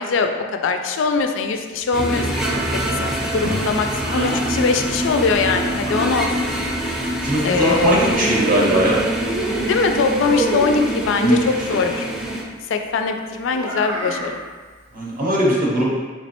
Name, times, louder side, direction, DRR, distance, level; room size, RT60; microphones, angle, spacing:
voice 1, 0.0-2.6 3.0-6.5 7.4-8.0 9.7-12.1 12.7-14.4, left 4 dB, 65° left, 6 dB, 0.3 m, -22 dB
sound 1, 1.9-12.4, right 1 dB, ahead, 0.4 m, -25 dB
Child speech kid speaking, 2.4-4.4 5.3-6.6 7.7-8.9 9.2-11.0 13.5-14.4, right 1 dB, 85° right, 0.8 m, -29 dB
voice 2, 7.2-9.0 11.2-11.4 14.9-15.9, equal, 45° right, -5 dB, 0.6 m, -19 dB
3.5 x 3.1 x 2.9 m, 1.4 s
head